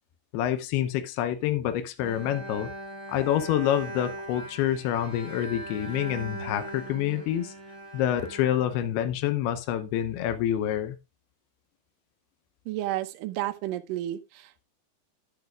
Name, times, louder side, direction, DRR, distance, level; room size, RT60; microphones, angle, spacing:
voice 1, 0.3-2.7 3.1-7.5 7.9-11.0, left 11 dB, 85° left, 2.8 m, -27 dB
Bowed string instrument, 2.0-9.4, right 1 dB, 10° left, 6.6 m, -40 dB
voice 2, 12.7-14.6, right 14 dB, 75° right, 2.2 m, -32 dB
10.5 x 10.5 x 2.4 m
omnidirectional pair, 4.5 m